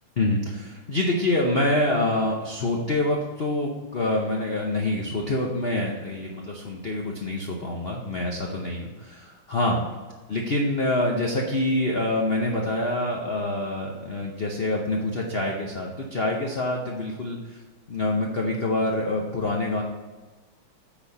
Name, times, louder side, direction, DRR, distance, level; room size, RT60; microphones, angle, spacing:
voice 1, 0.2-9.8 10.3-17.6 17.9-19.8, left 1 dB, 70° left, 0 dB, 0.5 m, -26 dB
8.7 x 4.2 x 5.4 m, 1.3 s
omnidirectional pair, 2.3 m